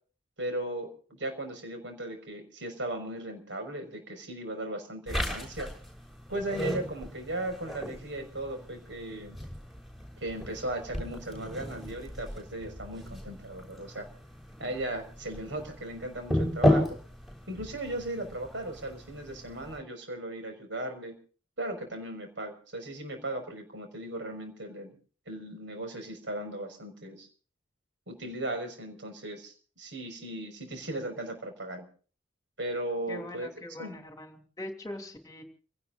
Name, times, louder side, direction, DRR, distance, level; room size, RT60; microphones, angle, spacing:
voice 1, 0.4-5.7 6.3-9.4 10.2-14.1 14.6-16.9 17.5-21.1 21.6-24.9 25.3-27.3 28.1-31.9 32.6-33.5 33.8-34.0, right 1 dB, 75° right, 6 dB, 5.7 m, -37 dB
sound 1, 5.1-19.8, equal, ahead, 6.4 m, -34 dB
voice 2, 33.1-35.4, left 1 dB, 20° left, 4 dB, 2.9 m, -42 dB
29.5 x 18.0 x 2.6 m, 0.42 s
head